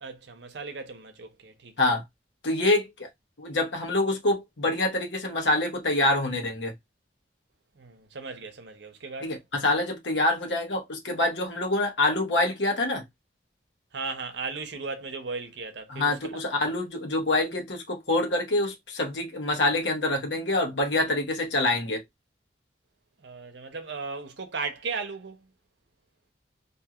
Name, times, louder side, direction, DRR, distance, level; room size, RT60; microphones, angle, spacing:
voice 1, 0.0-1.7 7.8-9.4 13.9-16.4 23.2-25.5, right 4 dB, 80° right, 0.7 m, -36 dB
voice 2, 2.4-3.1 3.4-6.7 9.2-13.0 15.9-22.0, left 2 dB, 85° left, 1.0 m, -26 dB
2.7 x 2.4 x 2.8 m
head